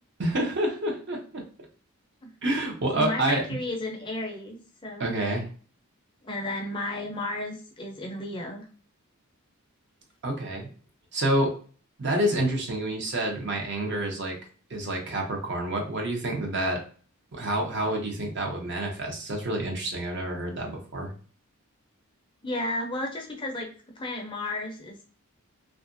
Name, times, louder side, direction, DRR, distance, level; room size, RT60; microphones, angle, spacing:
voice 1, 0.2-1.4 2.4-3.6 5.0-5.5 10.2-10.7 11.1-11.5 12.0-14.4 14.7-16.8 17.3-21.1, right 1 dB, 50° right, 1 dB, 0.7 m, -28 dB
voice 2, 2.9-5.2 6.2-8.7 22.4-23.7 24.0-25.0, left 1 dB, 20° left, 1 dB, 0.4 m, -33 dB
2.8 x 2.4 x 2.5 m, 0.41 s
head